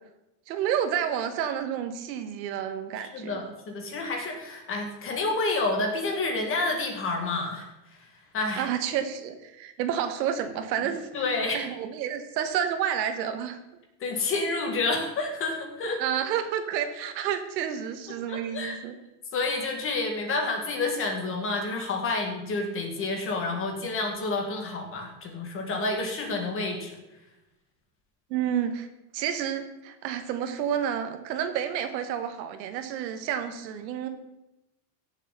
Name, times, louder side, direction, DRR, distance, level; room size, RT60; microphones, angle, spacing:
voice 1, 0.5-3.4 8.6-11.1 11.5-13.6 16.0-18.9 28.3-28.9 29.1-34.1, right 9 dB, 90° right, 8 dB, 1.7 m, -30 dB
voice 2, 3.0-7.7 8.3-8.7 11.1-11.6 14.0-16.0 18.3-18.8 19.3-27.0, left 3 dB, 25° left, 3 dB, 2.1 m, -29 dB
16.0 x 7.3 x 4.1 m, 0.95 s
supercardioid pair, 160°, 49 cm